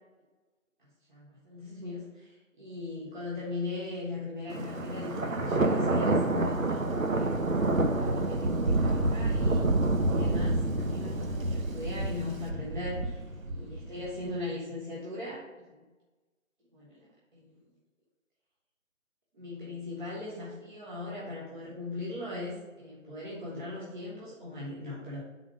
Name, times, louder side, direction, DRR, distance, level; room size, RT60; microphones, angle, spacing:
voice 1, 1.1-7.3 7.9-9.7 10.1-15.9 16.7-17.6 19.3-25.2, left 2 dB, 35° right, -6 dB, 1.2 m, -39 dB
Thunder, 4.5-14.3, right 2 dB, 85° right, 0.9 m, -28 dB
5.0 x 4.0 x 4.8 m, 1.2 s
figure-of-eight pair, 155°, 40 cm